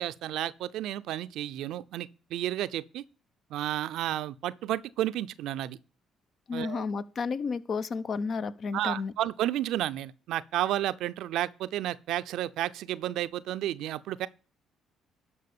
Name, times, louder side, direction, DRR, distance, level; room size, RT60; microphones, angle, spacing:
voice 1, 0.0-3.0 3.5-5.8 6.5-6.8 8.7-14.3, right 13 dB, 75° right, 0.6 m, -32 dB
voice 2, 6.5-9.1, left 5 dB, 50° left, 0.9 m, -32 dB
12.5 x 5.1 x 6.7 m
hypercardioid pair, 55°, 0 cm